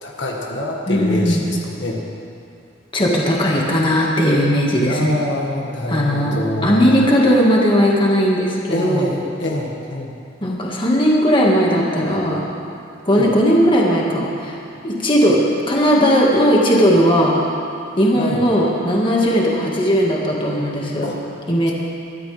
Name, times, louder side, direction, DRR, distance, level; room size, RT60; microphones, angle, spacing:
voice 1, 0.0-2.0 4.9-7.0 8.7-10.2 13.1-13.3 18.2-18.4 21.0-21.2, left 1 dB, 65° left, -2 dB, 1.9 m, -25 dB
voice 2, 0.9-1.5 2.9-5.1 5.9-6.4 6.6-9.0 10.4-12.4 13.1-14.6 14.8-15.4 15.7-17.5 18.0-21.1 21.5-21.7, equal, 25° left, -3 dB, 1.8 m, -17 dB
22.5 x 13.5 x 3.5 m, 2.5 s
head